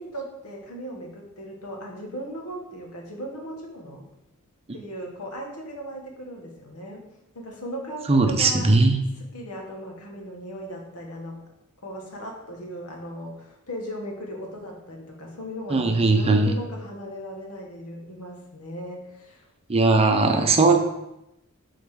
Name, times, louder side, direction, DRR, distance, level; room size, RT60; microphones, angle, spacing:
voice 1, 0.0-4.0 4.7-7.0 7.3-8.7 9.2-11.4 11.8-19.5 19.9-20.4, equal, 80° left, 0 dB, 1.5 m, -37 dB
voice 2, 8.1-9.0 15.7-16.5 19.7-20.8, right 3 dB, 25° right, 5 dB, 0.6 m, -19 dB
6.9 x 4.0 x 4.8 m, 0.90 s
head